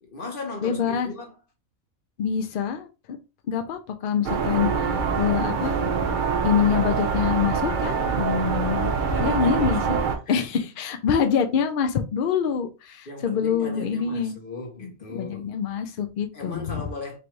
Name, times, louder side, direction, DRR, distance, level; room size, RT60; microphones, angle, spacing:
voice 1, 0.0-1.3 9.1-9.8 10.3-10.5 11.2-11.3 13.1-15.5 16.3-17.2, left 3 dB, 40° left, 1.2 m, -37 dB
voice 2, 0.6-1.1 2.2-3.2 3.5-5.8 6.4-8.9 9.2-10.0 10.3-14.4 14.8-16.9, left 7 dB, 70° left, 0.5 m, -25 dB
sound 1, 4.2-10.2, right 5 dB, 50° right, 0.6 m, -25 dB
3.3 x 2.6 x 4.4 m
omnidirectional pair, 1.4 m